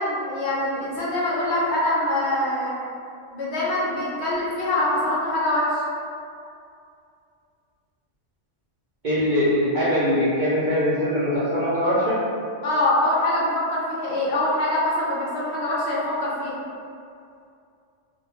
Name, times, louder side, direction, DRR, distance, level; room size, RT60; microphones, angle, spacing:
voice 1, 0.0-2.7 3.3-5.8 12.6-16.5, left 1 dB, 65° left, -7 dB, 0.8 m, -24 dB
voice 2, 9.0-12.2, equal, 60° right, -11 dB, 0.5 m, -22 dB
2.1 x 2.1 x 2.9 m, 2.5 s
omnidirectional pair, 1.3 m